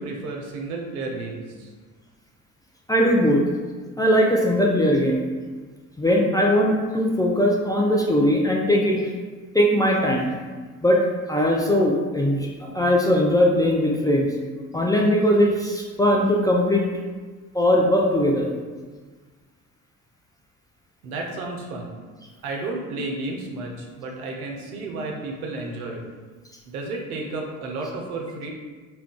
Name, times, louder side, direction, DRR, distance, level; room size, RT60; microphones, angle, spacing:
voice 1, 0.0-1.7 21.0-22.0 22.4-26.0 26.7-28.5, right 2 dB, 90° right, 1 dB, 0.5 m, -32 dB
voice 2, 2.9-3.4 4.0-5.2 6.0-9.0 9.5-10.3 10.8-11.0 11.3-14.3 14.7-16.9 17.5-18.5, equal, 10° left, -2 dB, 0.3 m, -20 dB
2.3 x 2.2 x 3.6 m, 1.4 s
hypercardioid pair, 50°, 43 cm